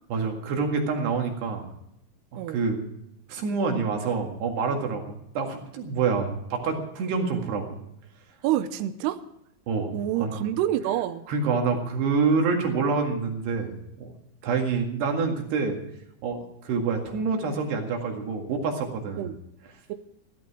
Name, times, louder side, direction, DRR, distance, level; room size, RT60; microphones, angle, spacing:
voice 1, 0.1-1.7 2.3-2.8 3.3-7.8 9.7-10.4 11.3-13.7 14.0-14.1 14.4-15.8 16.2-19.3, right 4 dB, 65° right, 2 dB, 3.8 m, -27 dB
voice 2, 8.4-9.2 9.9-11.2 19.2-19.4 19.9-20.0, right 12 dB, 85° right, 10 dB, 2.4 m, -27 dB
15.5 x 14.5 x 4.8 m, 0.79 s
omnidirectional pair, 5.5 m